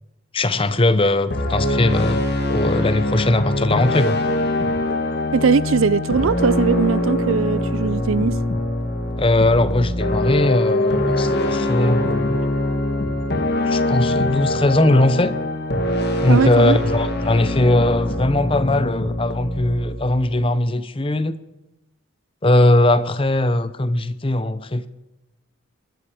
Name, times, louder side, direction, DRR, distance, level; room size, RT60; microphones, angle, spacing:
voice 1, 0.3-4.2 9.2-12.4 13.6-15.4 16.2-21.4 22.4-24.9, left 1 dB, 25° left, 0.7 m, -19 dB
sound 1, 1.3-20.5, left 1 dB, 50° left, 2.0 m, -23 dB
voice 2, 5.3-8.4 16.3-16.8, right 5 dB, 70° right, 0.5 m, -20 dB
21.0 x 13.0 x 5.1 m
head